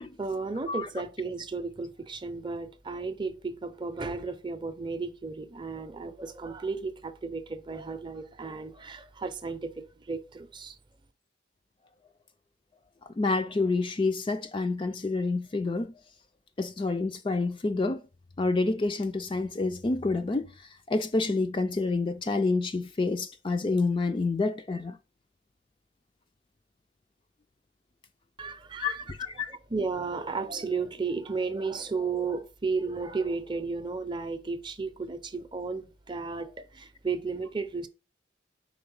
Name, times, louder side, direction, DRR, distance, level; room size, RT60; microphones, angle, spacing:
voice 1, 0.2-10.8 28.4-29.0 29.5-37.9, right 4 dB, 25° right, 0.6 m, -34 dB
voice 2, 13.2-15.9 16.6-18.0 18.4-20.5 20.9-25.0 28.8-29.5, left 3 dB, 25° left, 0.4 m, -28 dB
4.7 x 4.2 x 5.3 m
head